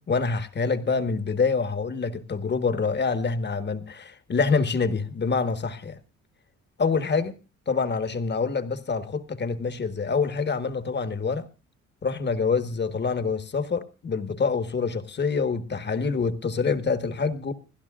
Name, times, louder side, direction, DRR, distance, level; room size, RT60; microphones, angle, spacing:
voice 1, 0.0-6.0 6.8-7.3 7.7-11.4 12.0-17.5, left 5 dB, 35° left, 1.4 m, -26 dB
29.0 x 11.5 x 2.5 m
cardioid pair, 90°, 30 cm